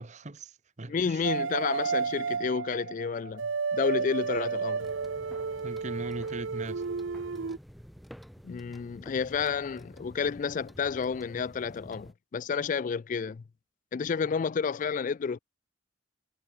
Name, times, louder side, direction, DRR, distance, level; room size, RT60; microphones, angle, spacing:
voice 1, 0.0-1.3 5.6-6.8, right 2 dB, 40° right, 0.9 m, -39 dB
voice 2, 0.9-4.9 8.4-13.4 13.9-15.4, left 6 dB, 40° left, 0.3 m, -30 dB
sound 1, 1.2-7.6, right 5 dB, 80° right, 0.7 m, -32 dB
sound 2, 4.8-12.1, equal, ahead, 1.1 m, -50 dB
head